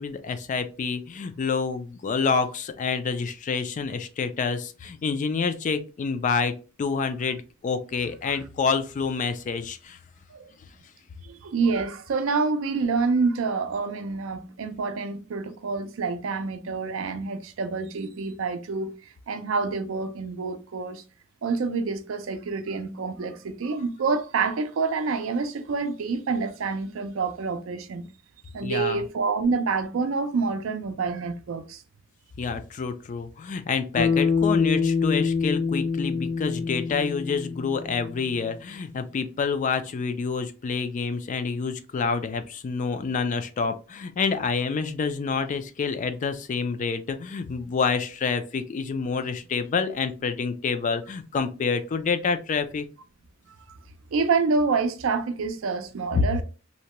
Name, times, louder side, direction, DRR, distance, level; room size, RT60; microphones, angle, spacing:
voice 1, 0.0-6.5 6.8-10.0 28.6-29.0 32.4-52.9, left 5 dB, 40° left, 0.3 m, -28 dB
voice 2, 11.2-18.9 19.3-21.0 21.4-28.1 28.5-31.8 53.7-53.8 54.1-56.4, right 4 dB, 70° right, 0.4 m, -27 dB
Bass guitar, 34.0-38.4, left 5 dB, 85° left, 0.8 m, -25 dB
2.7 x 2.1 x 2.9 m
head